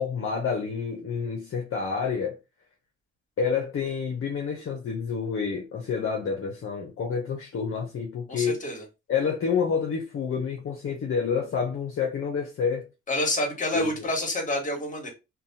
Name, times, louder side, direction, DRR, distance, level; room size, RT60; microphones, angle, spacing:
voice 1, 0.0-2.4 3.4-8.6 9.1-12.9 13.7-14.1, left 6 dB, 45° left, 0.7 m, -28 dB
voice 2, 8.3-8.8 13.1-15.1, left 1 dB, 25° left, 1.3 m, -28 dB
2.6 x 2.2 x 2.7 m
cardioid pair, 90°, 30 cm